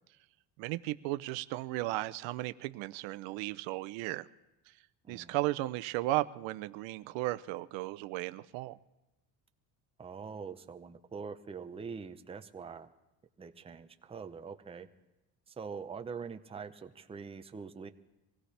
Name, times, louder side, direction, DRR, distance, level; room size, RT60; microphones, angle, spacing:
voice 1, 0.6-4.3 5.1-8.8, right 18 dB, 90° right, 14 dB, 0.6 m, -35 dB
voice 2, 10.0-12.9 13.4-14.9 15.5-17.9, right 5 dB, 15° right, 7 dB, 0.6 m, -44 dB
24.0 x 16.5 x 3.3 m, 0.97 s
cardioid pair, 135°, 44 cm